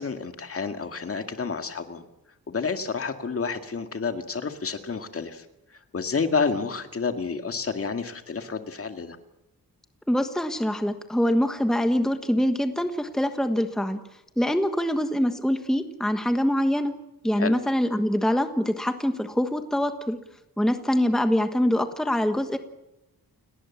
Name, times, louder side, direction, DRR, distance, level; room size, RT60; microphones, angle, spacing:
voice 1, 0.0-2.0 2.5-5.5 5.9-9.2 17.4-17.5, left 5 dB, 40° left, 7 dB, 2.1 m, -29 dB
voice 2, 10.1-14.0 14.4-16.9 17.2-20.2 20.6-22.6, equal, ahead, 7 dB, 1.3 m, -24 dB
29.5 x 19.0 x 7.3 m, 0.92 s
wide cardioid pair, 170°, 37 cm